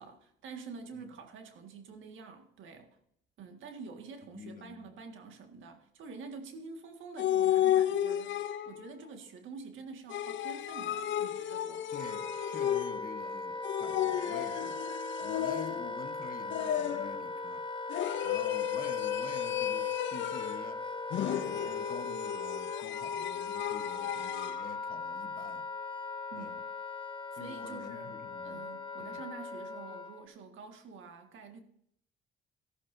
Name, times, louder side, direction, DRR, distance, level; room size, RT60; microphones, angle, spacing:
voice 1, 0.0-3.0 3.4-11.9 26.3-26.6 27.3-31.6, right 4 dB, 80° right, 1.8 m, -47 dB
voice 2, 4.3-4.9 11.9-14.8 15.2-17.7 18.2-20.8 21.4-25.7 26.3-26.6 27.4-28.7 29.0-29.2, left 5 dB, 45° left, 1.2 m, -48 dB
sound 1, 7.2-8.9 10.1-13.2 13.6-16.0 16.5-17.2 17.9-20.7 21.1-24.6, left 11 dB, 70° left, 0.7 m, -33 dB
Wind instrument woodwind instrument, 11.4-30.3, left 3 dB, 25° left, 0.9 m, -39 dB
13.5 x 13.0 x 2.7 m
cardioid pair, 90°, 20 cm